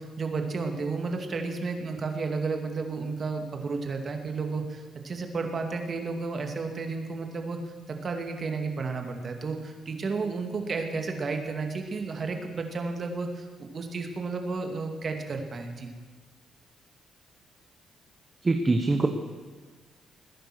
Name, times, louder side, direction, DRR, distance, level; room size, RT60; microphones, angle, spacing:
voice 1, 0.0-7.6 7.9-15.9, right 4 dB, 45° right, 4 dB, 2.4 m, -32 dB
voice 2, 18.4-19.1, right 3 dB, 25° right, 5 dB, 1.2 m, -23 dB
20.5 x 10.0 x 6.2 m, 1.4 s
cardioid pair, 90°, 0 cm